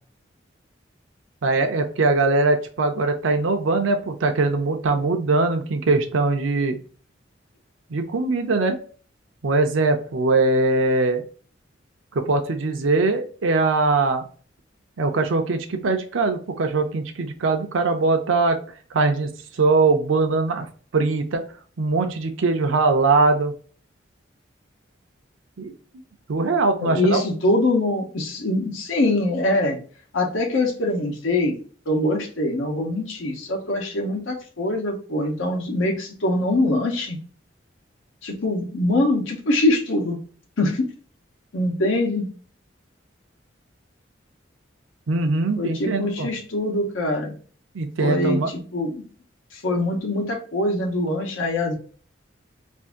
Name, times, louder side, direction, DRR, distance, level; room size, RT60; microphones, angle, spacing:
voice 1, 1.4-6.8 7.9-8.8 9.4-11.2 12.1-14.2 15.0-18.6 18.9-20.7 20.9-21.4 21.8-23.5 25.6-25.7 26.3-27.2 45.1-46.3 47.7-48.5, right 3 dB, 85° right, 5 dB, 0.5 m, -21 dB
voice 2, 26.8-29.8 30.1-31.5 31.9-37.2 38.2-40.2 40.6-40.9 41.5-42.3 45.6-47.4 48.0-49.0 49.5-51.8, left 1 dB, 85° left, 1 dB, 0.9 m, -23 dB
2.7 x 2.5 x 3.5 m, 0.42 s
head